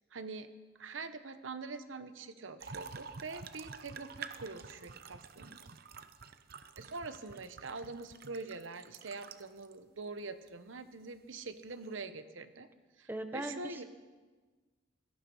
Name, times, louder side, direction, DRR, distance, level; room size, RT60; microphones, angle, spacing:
voice 1, 0.1-0.5 0.8-5.6 6.8-12.7 13.0-13.8, right 3 dB, 80° right, 10 dB, 1.0 m, -44 dB
sound 1, 2.6-9.7 10.5-10.6 11.7-12.0, right 5 dB, 50° right, 0.7 m, -49 dB
voice 2, 13.1-13.8, right 1 dB, 10° right, 8 dB, 1.0 m, -39 dB
18.0 x 13.0 x 5.5 m, 1.3 s
head